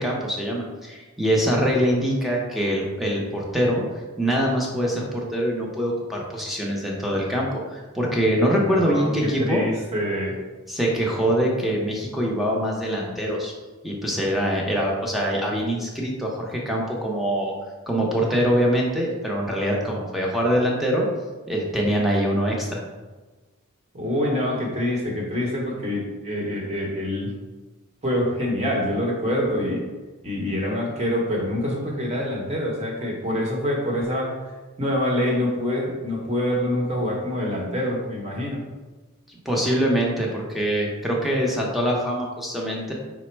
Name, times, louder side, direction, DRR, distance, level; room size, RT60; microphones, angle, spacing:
voice 1, 0.0-3.8 4.2-9.6 10.7-13.5 13.8-17.5 17.9-21.1 21.5-22.8 39.4-42.9, equal, ahead, -3 dB, 0.7 m, -24 dB
voice 2, 8.5-10.3 23.9-27.3 28.0-29.8 30.2-34.3 34.8-38.6, left 1 dB, 30° right, -3 dB, 1.0 m, -26 dB
5.0 x 2.1 x 4.4 m, 1.3 s
head